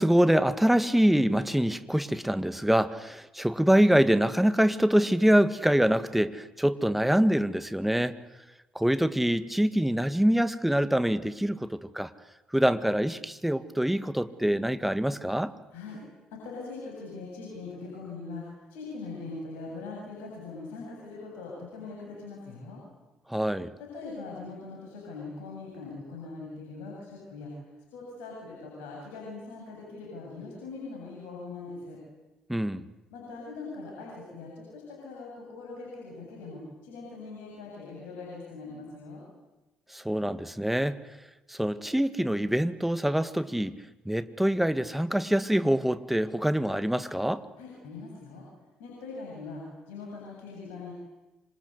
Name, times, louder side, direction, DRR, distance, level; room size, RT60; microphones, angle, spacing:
voice 1, 0.0-8.2 8.8-12.1 12.5-15.5 23.3-23.7 32.5-32.8 39.9-41.0 41.5-43.8 44.1-47.4, equal, 5° right, 12 dB, 1.8 m, -25 dB
voice 2, 16.3-22.8 23.8-27.5 27.9-32.0 33.1-39.2 47.6-48.5 48.8-50.9, left 3 dB, 70° left, -2 dB, 7.8 m, -41 dB
27.0 x 26.5 x 8.2 m, 1.0 s
figure-of-eight pair, 50°, 4 cm